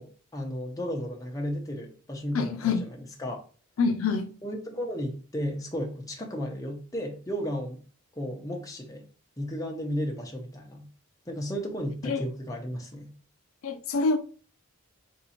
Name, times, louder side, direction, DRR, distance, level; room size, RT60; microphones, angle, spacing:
voice 1, 0.0-3.4 4.4-7.8 8.1-9.0 9.4-10.9 11.3-13.1, equal, 15° left, 0.8 m, -34 dB
voice 2, 2.3-2.9 3.8-4.3 12.0-12.2 13.6-14.2, left 4 dB, 65° left, 0.4 m, -26 dB
3.6 x 2.7 x 4.2 m
head